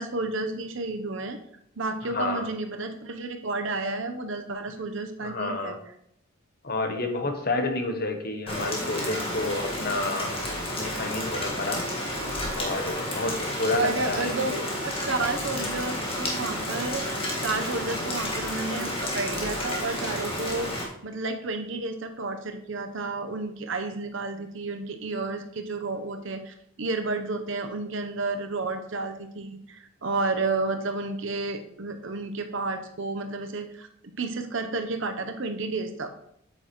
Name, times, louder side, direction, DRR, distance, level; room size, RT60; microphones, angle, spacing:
voice 1, 0.0-1.4 1.8-5.8 13.7-14.6 14.8-33.9 34.2-36.1, right 3 dB, 65° right, 6 dB, 0.9 m, -31 dB
voice 2, 2.1-2.5 5.2-5.8 6.6-10.4 10.7-12.0 12.5-14.7, left 2 dB, 45° left, 5 dB, 1.1 m, -30 dB
Rain, 8.5-20.8, left 1 dB, 25° left, 1.8 m, -31 dB
8.4 x 8.0 x 3.1 m, 0.73 s
head